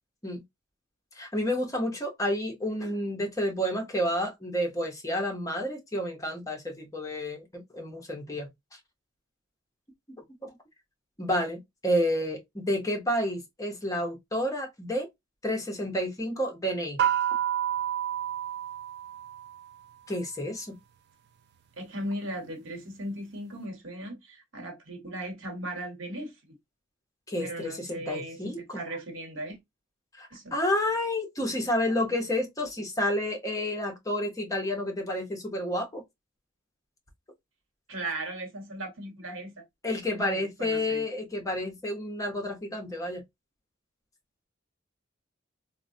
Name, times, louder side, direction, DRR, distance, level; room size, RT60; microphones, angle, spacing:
voice 1, 1.2-8.5 10.4-10.5 11.2-15.1 15.4-17.0 20.1-20.8 27.3-28.8 30.2-36.0 39.8-43.2, left 1 dB, 15° left, 0.7 m, -30 dB
sound 1, 17.0-19.7, right 10 dB, 55° right, 0.4 m, -29 dB
voice 2, 21.8-26.5 27.4-29.6 30.3-30.5 37.9-39.6 40.1-41.0, right 1 dB, 80° right, 1.0 m, -37 dB
3.7 x 2.1 x 2.5 m
head